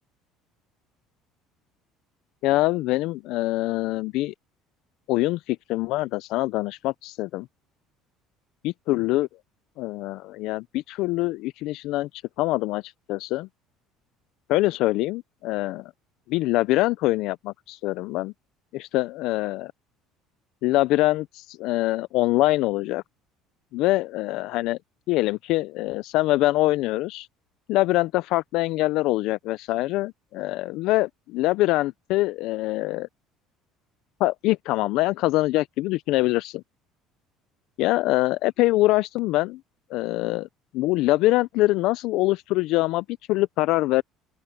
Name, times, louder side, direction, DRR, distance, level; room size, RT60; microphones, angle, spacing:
voice 1, 2.4-4.3 5.1-7.5 8.6-9.3 9.8-13.5 14.5-15.9 16.3-18.3 18.7-19.7 20.6-23.0 23.7-24.8 25.1-27.3 27.7-33.1 34.2-36.6 37.8-39.6 39.9-40.5 40.7-44.0, left 18 dB, 70° left, 0.4 m, -24 dB
open air
cardioid pair, 130°, 0 cm